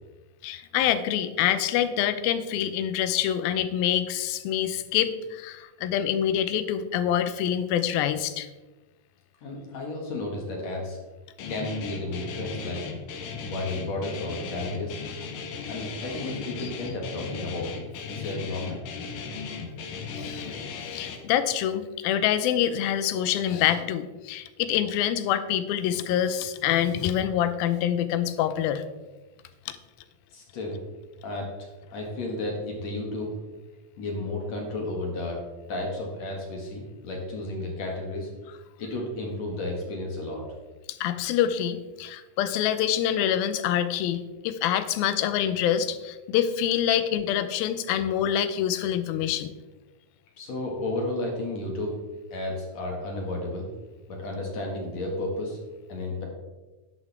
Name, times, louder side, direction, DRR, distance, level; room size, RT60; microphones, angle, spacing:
voice 1, 0.4-8.5 20.2-28.8 41.0-49.5, left 10 dB, 85° left, 11 dB, 2.5 m, -26 dB
voice 2, 9.4-11.0 11.5-12.9 13.4-15.0 15.7-17.7 18.1-18.8 30.3-30.8 31.2-33.3 34.0-35.4 35.7-38.3 38.8-40.4 48.0-48.1 50.4-51.9 52.3-53.7 54.1-55.6 55.9-56.3, left 2 dB, 55° left, 0 dB, 2.7 m, -32 dB
Guitar, 11.4-21.2, left 5 dB, 70° left, 2.6 m, -37 dB
11.0 x 9.4 x 3.5 m, 1.2 s
omnidirectional pair, 4.2 m